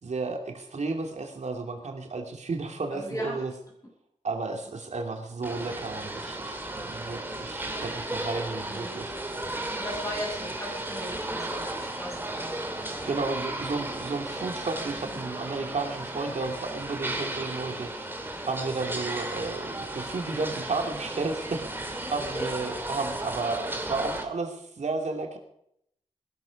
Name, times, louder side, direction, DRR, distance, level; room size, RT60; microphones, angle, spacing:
voice 1, 0.0-3.5 4.2-9.1 13.0-18.1 18.4-21.6 22.1-25.4, right 3 dB, 90° right, 3 dB, 2.6 m, -33 dB
voice 2, 2.9-3.5 8.7-9.0 9.8-13.2 13.6-13.7 15.0-15.3 22.0-22.4, equal, 30° left, -2 dB, 7.2 m, -38 dB
sound 1, 5.4-24.2, right 1 dB, 20° right, 2.5 m, -35 dB
20.5 x 12.5 x 5.3 m, 0.73 s
wide cardioid pair, 100°, 12 cm